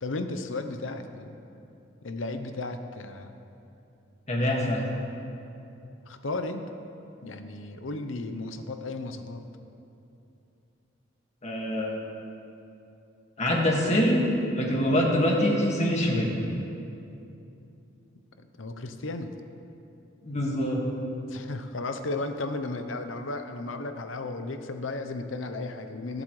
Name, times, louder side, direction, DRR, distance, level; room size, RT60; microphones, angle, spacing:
voice 1, 0.0-1.4 2.0-3.4 6.1-6.7 7.2-9.4 18.5-19.4 21.3-26.2, left 2 dB, 85° left, 7 dB, 0.8 m, -34 dB
voice 2, 4.3-4.8 11.4-11.9 13.4-14.2 14.5-16.3 20.2-20.8, equal, 35° left, -2 dB, 1.9 m, -24 dB
22.0 x 8.1 x 3.2 m, 2.8 s
head